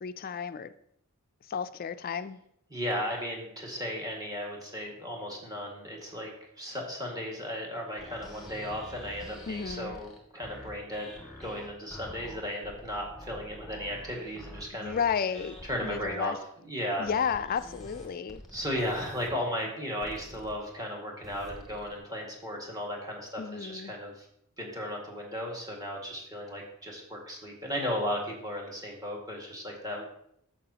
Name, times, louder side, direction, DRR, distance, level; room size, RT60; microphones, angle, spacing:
voice 1, 0.0-0.7 1.4-2.4 9.5-9.9 14.7-15.6 15.8-16.4 17.0-18.4 23.4-23.9, left 7 dB, 40° left, 12 dB, 0.4 m, -32 dB
voice 2, 2.7-6.3 6.6-11.1 11.4-15.0 15.6-16.3 16.7-17.1 18.5-24.3 24.6-30.1, equal, 15° right, -1 dB, 1.8 m, -35 dB
sound 1, 8.0-16.1 17.1-19.3 20.0-20.5 21.2-22.0, equal, ahead, 1.9 m, -47 dB
11.0 x 7.6 x 2.9 m, 0.72 s
head